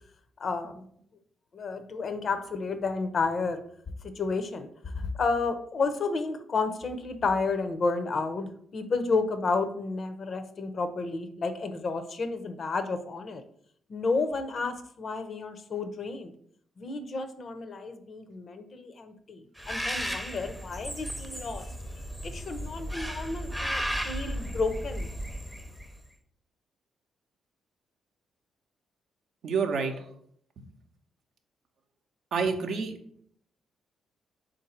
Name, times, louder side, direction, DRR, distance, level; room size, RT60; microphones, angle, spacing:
voice 1, 0.4-0.9 1.5-3.6 4.2-13.4 13.9-16.3 16.8-21.7 22.2-25.1, left 4 dB, 55° left, 9 dB, 0.5 m, -31 dB
Bird, 19.6-26.0, equal, ahead, 0.5 m, -35 dB
voice 2, 29.4-30.1 30.6-30.7 32.3-33.0, right 5 dB, 70° right, 5 dB, 0.6 m, -29 dB
3.7 x 2.6 x 4.2 m, 0.63 s
supercardioid pair, 50°, 0 cm